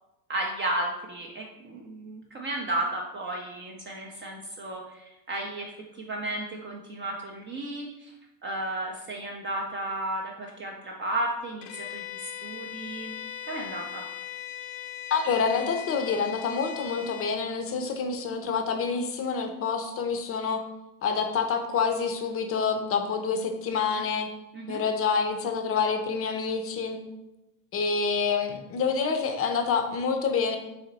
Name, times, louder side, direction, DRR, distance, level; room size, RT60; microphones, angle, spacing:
voice 1, 0.3-8.1 8.4-13.1 13.5-14.0 24.5-24.8, right 1 dB, 25° right, -1 dB, 0.4 m, -33 dB
Bowed string instrument, 11.6-17.4, left 10 dB, 65° left, 0.7 m, -39 dB
voice 2, 15.1-20.6 21.0-24.3 24.7-27.0 27.7-30.6, left 5 dB, 30° left, 6 dB, 0.5 m, -27 dB
4.2 x 2.9 x 3.9 m, 0.94 s
supercardioid pair, 120°, 49 cm